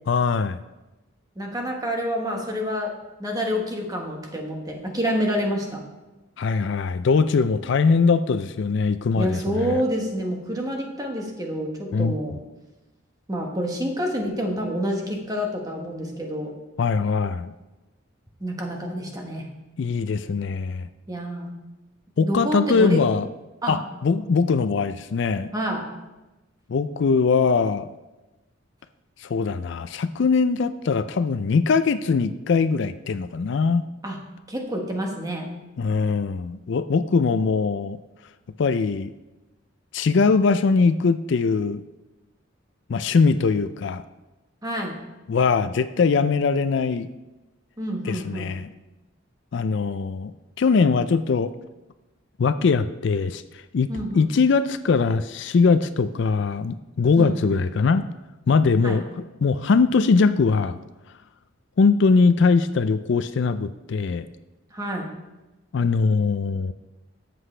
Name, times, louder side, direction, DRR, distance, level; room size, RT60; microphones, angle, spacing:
voice 1, 0.1-0.6 6.4-9.8 11.9-12.1 16.8-17.5 19.8-20.9 22.2-23.2 23.7-25.5 26.7-27.9 29.3-33.8 35.8-38.0 38.6-39.1 39.9-41.8 42.9-44.0 45.3-47.1 48.1-48.7 49.5-50.3 50.6-51.5 52.4-53.4 53.7-53.9 54.1-58.0 58.5-59.1 59.4-60.8 61.8-64.3 65.7-66.7, left 4 dB, 60° left, 12 dB, 0.4 m, -21 dB
voice 2, 1.4-2.9 3.2-5.8 9.1-12.4 13.3-16.6 18.4-19.5 21.1-21.5 22.2-23.0 23.6-23.8 25.5-25.9 34.0-34.2 34.5-35.5 44.6-45.0 47.8-48.5 53.9-54.3 57.2-57.6 58.8-59.0 64.7-65.1, equal, 20° right, 1 dB, 1.4 m, -28 dB
13.0 x 7.8 x 3.3 m, 1.1 s
head